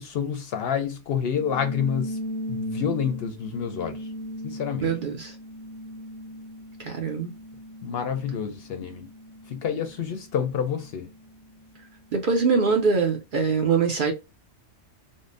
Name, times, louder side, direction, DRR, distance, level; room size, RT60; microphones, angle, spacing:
voice 1, 0.0-2.2 2.5-4.1 4.4-4.9 7.8-9.1 9.5-11.1, left 8 dB, 65° left, 0.7 m, -28 dB
sound 1, 1.3-12.2, equal, 80° right, 1.1 m, -38 dB
voice 2, 4.8-5.4 6.8-7.3 12.1-14.1, right 5 dB, 55° right, 0.6 m, -23 dB
3.6 x 2.0 x 2.5 m
omnidirectional pair, 1.3 m